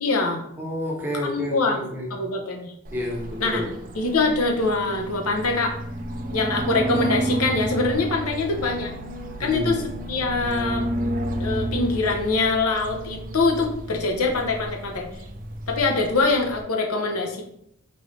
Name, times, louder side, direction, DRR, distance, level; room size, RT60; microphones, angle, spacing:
voice 1, 0.0-0.4 1.2-1.8 2.1-2.7 3.4-3.6 3.9-5.8 6.3-8.9 9.4-10.8 11.4-15.1 15.7-17.5, left 3 dB, 90° left, 2 dB, 0.7 m, -24 dB
voice 2, 0.6-2.1 2.9-3.8 9.4-9.8, equal, 10° right, -2 dB, 0.8 m, -29 dB
sound 1, 2.8-16.6, right 1 dB, 40° right, 0.4 m, -31 dB
4.6 x 2.6 x 3.1 m, 0.74 s
head